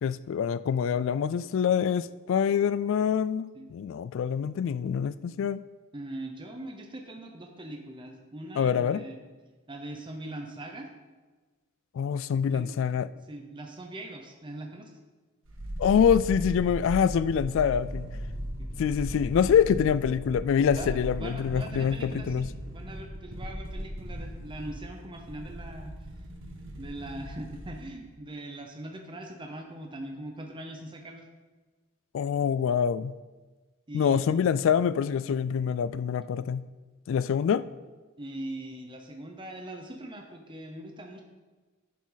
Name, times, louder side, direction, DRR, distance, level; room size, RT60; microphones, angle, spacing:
voice 1, 0.0-5.6 8.6-9.0 11.9-13.1 15.8-18.1 18.8-22.5 32.1-33.1 33.9-36.7 37.1-37.7, left 7 dB, 65° left, 15 dB, 0.3 m, -25 dB
voice 2, 5.9-9.2 9.7-10.9 12.5-12.7 13.3-15.0 18.6-18.8 20.8-25.9 26.8-31.3 33.9-34.4 38.2-41.2, right 1 dB, 25° right, 3 dB, 0.8 m, -41 dB
sound 1, 15.5-27.8 28.1-28.2, equal, 65° right, 1.7 m, -38 dB
11.0 x 7.3 x 4.0 m, 1.3 s
head